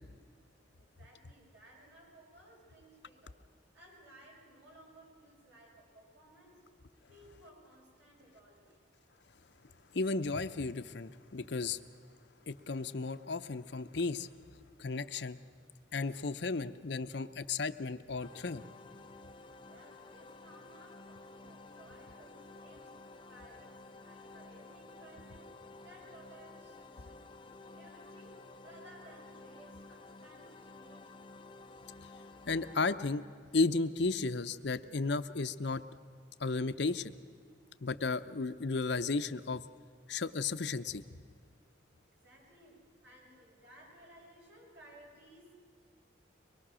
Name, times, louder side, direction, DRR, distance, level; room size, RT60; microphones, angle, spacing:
voice 1, 0.8-6.7 7.1-9.0 19.6-31.3 42.0-45.5, right 1 dB, 60° right, -2 dB, 6.7 m, -59 dB
voice 2, 9.9-11.8 12.5-14.3 14.8-15.4 15.9-18.6 32.5-33.2 33.5-35.8 36.4-37.2 37.8-39.6 40.1-41.0, left 3 dB, 60° left, 11 dB, 0.7 m, -34 dB
sound 1, 18.2-32.9, left 3 dB, 25° left, 0.5 m, -53 dB
23.5 x 21.0 x 6.3 m, 2.2 s
head